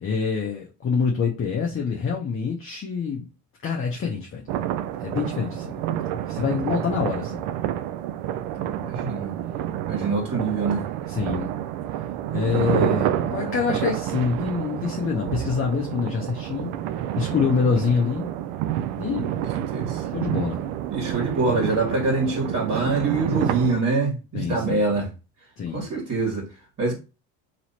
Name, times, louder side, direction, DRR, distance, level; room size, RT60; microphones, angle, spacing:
voice 1, 0.0-3.2 3.6-4.4 5.0-5.8 6.3-7.5 11.2-11.5 12.3-16.7 17.2-18.3 19.0-19.3 20.1-20.6 24.3-25.0 25.6-25.9, left 6 dB, 30° left, 0.8 m, -26 dB
sound 1, 4.5-23.8, right 11 dB, 65° right, 0.6 m, -29 dB
voice 2, 8.6-9.3 9.9-10.8 12.9-13.6 17.7-17.8 19.3-20.1 20.9-25.1 25.7-26.9, right 3 dB, 35° right, 1.9 m, -25 dB
3.1 x 2.8 x 4.2 m
supercardioid pair, 90°, 44 cm